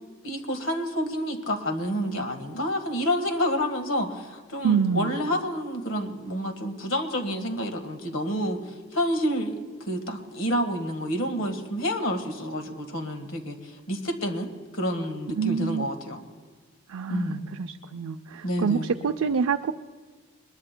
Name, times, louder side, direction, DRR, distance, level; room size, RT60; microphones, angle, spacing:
voice 1, 0.2-8.6 8.9-9.6 9.9-16.2 17.1-17.5 18.4-18.9, equal, 75° left, 6 dB, 1.6 m, -29 dB
voice 2, 4.6-5.1 15.4-15.9 16.9-19.7, right 6 dB, 85° right, 6 dB, 0.5 m, -26 dB
22.0 x 21.0 x 2.2 m, 1.4 s
head